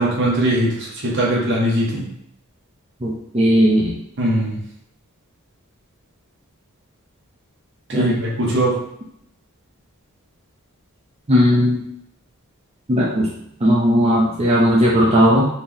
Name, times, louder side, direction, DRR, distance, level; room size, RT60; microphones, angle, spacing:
voice 1, 0.0-2.1 4.2-4.6 7.9-8.8, right 1 dB, 55° right, -3 dB, 1.2 m, -20 dB
voice 2, 3.0-3.9 7.9-8.1 11.3-11.8 12.9-13.3 13.6-15.5, equal, 30° right, -6 dB, 0.7 m, -16 dB
4.3 x 2.9 x 3.6 m, 0.74 s
head